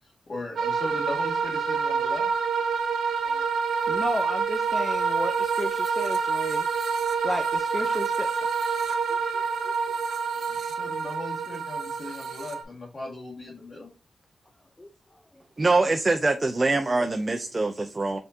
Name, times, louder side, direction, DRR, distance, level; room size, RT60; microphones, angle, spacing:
voice 1, 0.0-2.3 10.5-13.9, left 2 dB, 50° left, 1.7 m, -38 dB
sound 1, 0.6-12.6, right 5 dB, 85° right, 0.7 m, -27 dB
voice 2, 3.9-6.7 7.2-8.3 9.1-9.8 14.8-14.9, left 1 dB, 20° left, 0.5 m, -33 dB
voice 3, 15.6-18.2, right 3 dB, 35° right, 0.6 m, -24 dB
5.4 x 3.6 x 2.6 m
cardioid pair, 50°, 0 cm